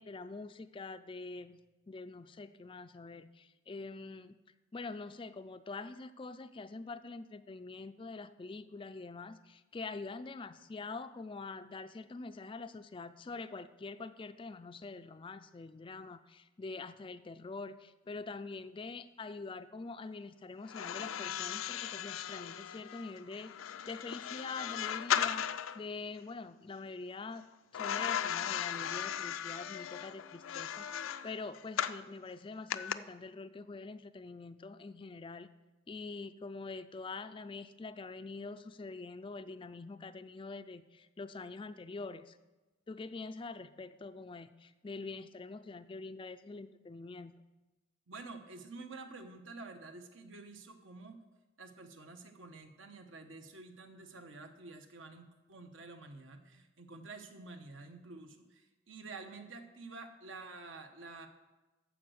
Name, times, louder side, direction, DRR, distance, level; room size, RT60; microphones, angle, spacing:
voice 1, 0.0-1.6 1.9-4.4 4.7-23.5 23.9-25.4 25.7-27.5 27.7-35.5 35.9-42.4 42.9-47.3, left 3 dB, 25° left, 12 dB, 0.3 m, -45 dB
sound 1, 20.7-25.8 27.7-32.0 32.7-32.9, left 9 dB, 85° left, 0.4 m, -37 dB
voice 2, 48.1-51.2 51.6-61.3, right 3 dB, 75° right, 6 dB, 1.2 m, -49 dB
14.0 x 5.2 x 6.4 m, 1.1 s
head